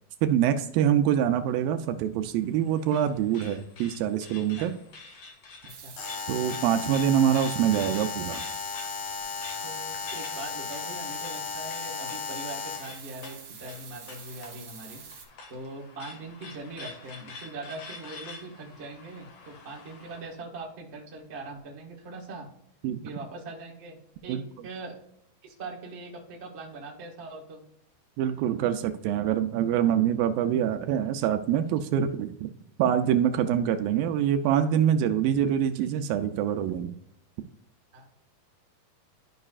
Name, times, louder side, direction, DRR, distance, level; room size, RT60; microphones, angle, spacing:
voice 1, 0.2-4.7 6.3-8.4 22.8-23.0 24.3-24.4 28.2-32.5 32.8-36.9, right 9 dB, 80° right, 7 dB, 2.2 m, -25 dB
sound 1, 2.1-20.3, left 4 dB, 60° left, 1.9 m, -48 dB
sound 2, 5.7-15.3, right 7 dB, 60° right, 2.9 m, -46 dB
Alarm, 6.0-13.0, left 6 dB, 80° left, 1.4 m, -35 dB
voice 2, 9.6-15.0 15.5-22.5 23.0-25.0 25.4-27.6 37.9-38.2, right 2 dB, 45° right, -2 dB, 0.8 m, -41 dB
12.0 x 5.4 x 2.4 m, 0.72 s
omnidirectional pair, 4.3 m